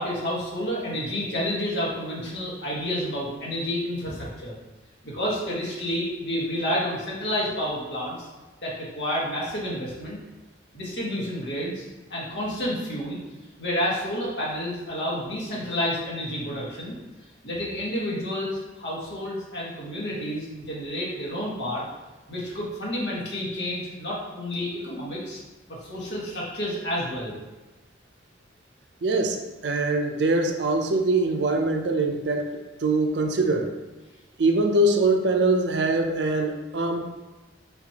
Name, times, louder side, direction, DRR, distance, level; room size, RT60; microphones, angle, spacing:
voice 1, 0.0-4.5 5.0-8.3 8.6-10.2 10.7-11.8 12.1-13.2 13.6-16.9 17.4-21.8 22.3-25.4 25.7-27.4, equal, 65° left, -5 dB, 1.5 m, -30 dB
voice 2, 29.0-32.5 32.8-33.7 34.4-37.2, right 2 dB, 70° right, 4 dB, 0.5 m, -23 dB
4.4 x 4.0 x 2.9 m, 1.2 s
head